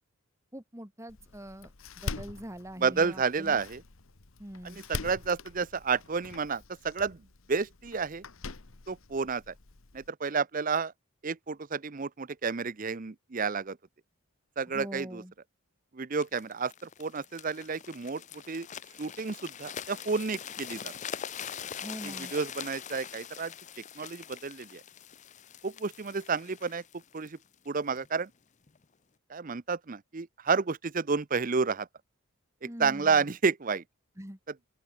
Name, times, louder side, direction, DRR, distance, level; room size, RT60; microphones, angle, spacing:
voice 1, 0.5-3.6 4.4-4.8 14.7-15.3 21.8-22.3 32.6-33.3 34.2-34.4, equal, 15° right, 2.4 m, -43 dB
Door, 1.1-10.1, left 3 dB, 65° left, 1.4 m, -44 dB
voice 2, 2.8-3.8 4.6-7.2 7.5-8.2 8.9-9.5 9.9-10.9 11.2-13.8 14.6-15.2 15.9-18.2 18.5-18.7 19.0-20.9 22.0-23.5 24.0-24.8 25.6-26.8 27.1-27.4 27.7-28.3 29.3-31.9 32.8-33.8, right 5 dB, 35° right, 0.6 m, -30 dB
sound 1, 16.2-28.1 28.7-28.8, left 8 dB, 30° left, 0.6 m, -43 dB
open air
head